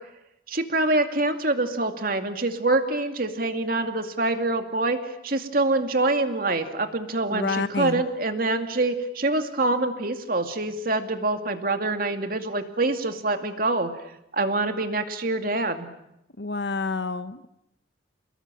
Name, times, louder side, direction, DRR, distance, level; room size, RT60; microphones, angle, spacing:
voice 1, 0.5-13.9 14.3-15.9, right 2 dB, 50° right, 6 dB, 2.4 m, -25 dB
voice 2, 7.3-8.0 16.4-17.5, left 3 dB, 65° left, 12 dB, 1.2 m, -28 dB
29.5 x 20.0 x 9.2 m, 0.85 s
head